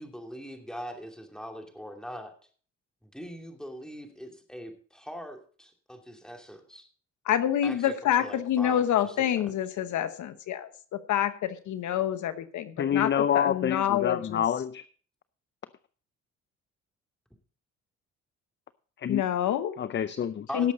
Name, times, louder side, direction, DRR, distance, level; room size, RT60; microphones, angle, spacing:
voice 1, 0.0-2.3 3.0-6.9 7.6-9.2 20.5-20.7, equal, ahead, 3 dB, 2.6 m, -41 dB
voice 2, 7.3-14.4 19.1-19.8 20.5-20.7, left 10 dB, 75° left, 11 dB, 1.1 m, -27 dB
voice 3, 12.8-14.8 19.0-19.2 19.8-20.5, left 9 dB, 40° left, 14 dB, 0.6 m, -27 dB
17.5 x 7.2 x 4.0 m, 0.42 s
cardioid pair, 90°, 30 cm